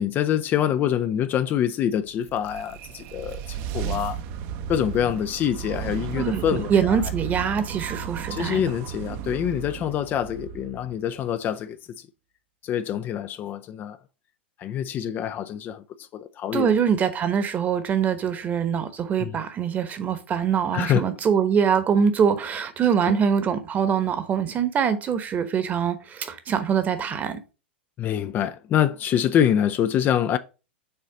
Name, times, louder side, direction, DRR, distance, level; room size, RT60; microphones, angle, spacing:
voice 1, 0.0-4.2 4.7-7.0 8.3-11.8 12.6-14.0 14.6-16.7 19.2-19.4 20.7-21.0 23.1-23.2 28.0-30.4, left 10 dB, 30° left, 0.4 m, -25 dB
sound 1, 2.1-11.3, right 8 dB, 45° right, 0.8 m, -34 dB
voice 2, 6.2-8.6 16.5-27.4, right 7 dB, 25° right, 1.1 m, -23 dB
6.6 x 4.0 x 5.0 m
figure-of-eight pair, 100°, 6 cm